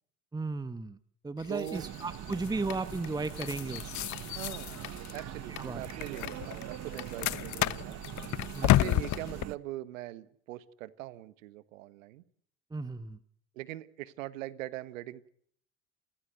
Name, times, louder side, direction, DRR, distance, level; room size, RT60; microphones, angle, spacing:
voice 1, 0.3-1.0 1.2-4.1 5.6-5.8 8.5-9.0 12.7-13.2, right 3 dB, 10° right, 13 dB, 1.1 m, -35 dB
sound 1, 1.4-9.4, left 16 dB, 45° left, 0.9 m, -33 dB
voice 2, 1.5-1.8 4.3-4.8 5.1-8.0 8.6-12.2 13.5-15.3, right 15 dB, 75° right, 16 dB, 1.5 m, -42 dB
sound 2, 1.7-9.6, right 13 dB, 40° right, 1.2 m, -42 dB
trafficator cabin, 2.2-9.3, left 14 dB, 60° left, 3.6 m, -50 dB
29.5 x 15.5 x 7.9 m, 0.64 s
hypercardioid pair, 75°, 40 cm